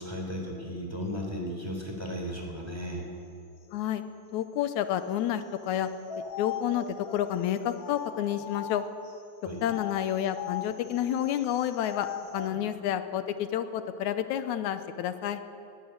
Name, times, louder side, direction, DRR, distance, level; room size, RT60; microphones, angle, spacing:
voice 1, 0.0-3.0 9.4-9.6 12.5-12.6, equal, 10° right, 0 dB, 3.6 m, -35 dB
voice 2, 3.7-4.0 4.3-5.9 6.4-8.8 9.6-15.4, left 10 dB, 85° left, 10 dB, 2.3 m, -30 dB
sound 1, 5.7-9.1 9.6-12.6, left 8 dB, 65° left, 0.9 m, -39 dB
21.0 x 16.5 x 8.8 m, 2.6 s
omnidirectional pair, 3.3 m